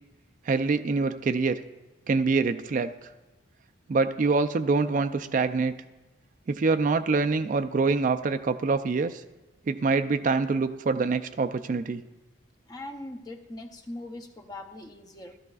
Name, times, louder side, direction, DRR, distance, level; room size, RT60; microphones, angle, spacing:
voice 1, 0.5-1.6 2.1-2.9 3.9-5.8 6.5-9.2 9.7-12.0, right 4 dB, 40° right, 9 dB, 0.3 m, -25 dB
voice 2, 12.7-15.4, left 1 dB, 20° left, 5 dB, 0.6 m, -41 dB
14.5 x 13.0 x 2.4 m, 1.1 s
head